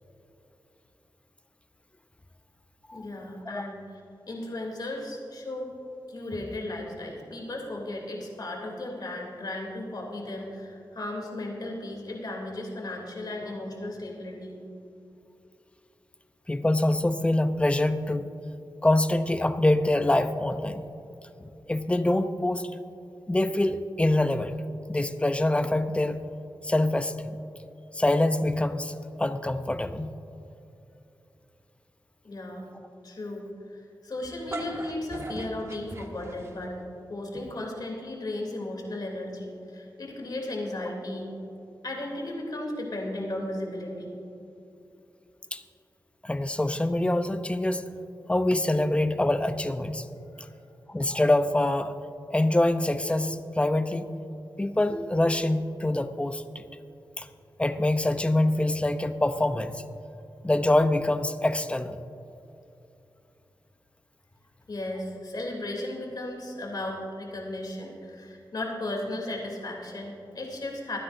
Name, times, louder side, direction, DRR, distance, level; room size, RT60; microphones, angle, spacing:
voice 1, 2.9-4.0 4.3-5.7 6.1-14.6 32.2-32.7 33.0-36.8 37.1-41.3 41.8-44.2 50.4-50.5 64.7-71.0, left 1 dB, 60° left, 0 dB, 3.1 m, -35 dB
voice 2, 16.5-18.3 18.8-20.9 21.4-22.7 23.3-24.5 24.9-26.2 26.6-27.3 27.9-30.1 45.5-45.6 46.2-47.9 48.3-50.1 50.9-52.0 52.3-54.1 54.6-56.6 57.2-57.3 57.6-59.8 60.4-62.0, left 1 dB, 15° left, 10 dB, 0.7 m, -25 dB
sound 1, 34.2-36.8, right 1 dB, 35° right, 1.4 m, -39 dB
24.0 x 9.9 x 2.7 m, 2.8 s
wide cardioid pair, 75°, 8 cm